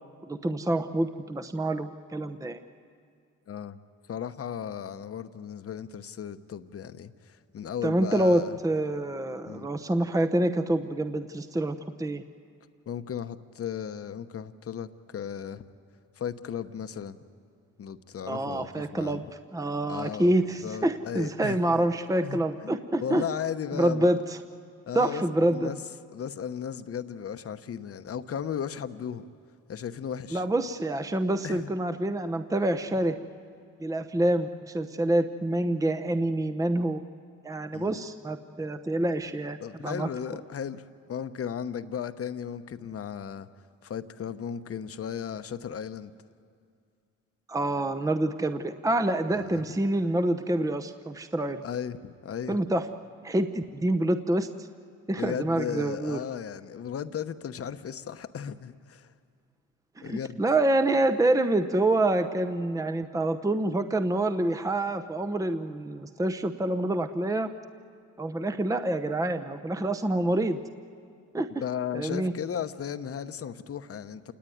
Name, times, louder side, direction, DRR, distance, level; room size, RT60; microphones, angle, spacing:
voice 1, 0.3-2.6 7.8-12.2 18.3-19.2 19.5-23.2 23.7-24.4 24.9-25.7 30.3-33.2 33.8-37.0 37.4-40.1 47.5-51.6 52.5-52.9 53.2-54.7 55.1-56.2 60.0-67.5 68.2-70.6 71.3-71.5 71.9-72.3, right 1 dB, 10° right, 9 dB, 0.8 m, -27 dB
voice 2, 3.5-3.8 4.1-8.5 9.5-9.7 12.9-15.6 16.2-17.2 17.8-19.2 19.9-20.4 20.6-21.8 22.2-22.7 23.0-24.1 24.9-25.8 26.1-29.2 29.7-30.4 31.4-31.7 37.7-38.0 39.6-43.5 43.8-46.1 49.3-49.7 51.6-52.6 55.2-59.1 60.0-60.4 71.6-74.3, left 8 dB, 50° left, 11 dB, 1.1 m, -35 dB
27.5 x 19.0 x 9.3 m, 2.3 s
cardioid pair, 90°, 30 cm